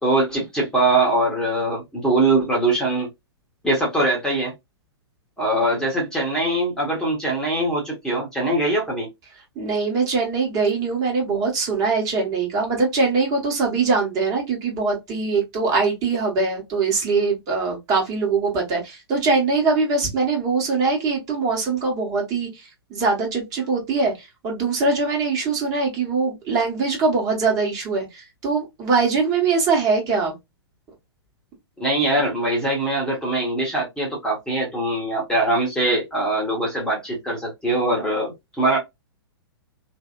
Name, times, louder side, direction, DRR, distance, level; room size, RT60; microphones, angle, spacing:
voice 1, 0.0-3.1 3.6-4.5 5.4-9.1 31.8-38.8, right 2 dB, 5° left, 1.1 m, -22 dB
voice 2, 9.5-30.3, right 4 dB, 25° right, 1.4 m, -22 dB
3.3 x 2.7 x 2.4 m
figure-of-eight pair, 110°, 14 cm